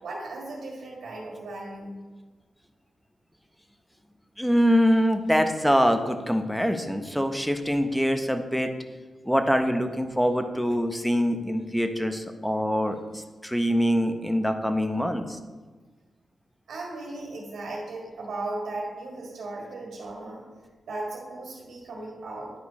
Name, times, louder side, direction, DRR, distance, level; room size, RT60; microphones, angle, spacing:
voice 1, 0.0-1.9 16.7-20.4 20.8-22.5, right 2 dB, 85° right, -2 dB, 1.9 m, -36 dB
voice 2, 4.4-8.7 9.3-15.4, equal, ahead, 6 dB, 0.7 m, -24 dB
10.5 x 4.5 x 4.1 m, 1.3 s
cardioid pair, 85°, 0 cm